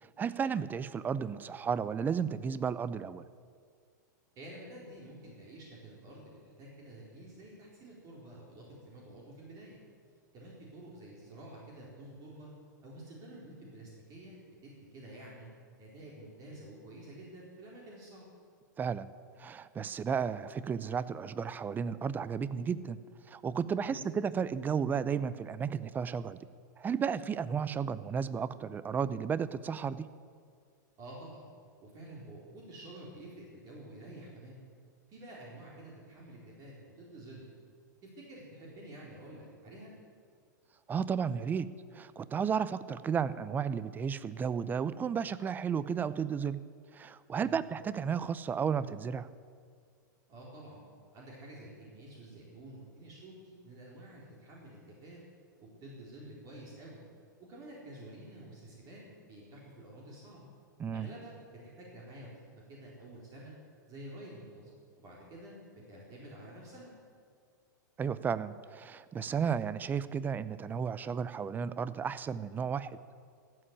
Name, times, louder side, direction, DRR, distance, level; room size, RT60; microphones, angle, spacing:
voice 1, 0.0-3.2 18.8-19.1 19.4-23.0 23.3-26.4 26.8-30.1 40.9-46.6 46.9-49.3 60.8-61.1 68.0-72.9, right 7 dB, 15° right, 16 dB, 0.5 m, -33 dB
voice 2, 4.4-9.8 10.3-12.5 12.8-15.5 15.8-18.2 23.8-24.0 31.0-31.4 31.8-34.6 35.1-37.4 38.0-39.9 47.4-47.6 50.3-50.8 51.1-55.2 55.6-57.0 57.5-60.5 60.9-62.3 62.7-63.5 63.9-64.7 65.0-66.9, right 1 dB, 35° right, -4 dB, 4.3 m, -49 dB
15.0 x 7.8 x 10.0 m, 2.1 s
hypercardioid pair, 120°, 10 cm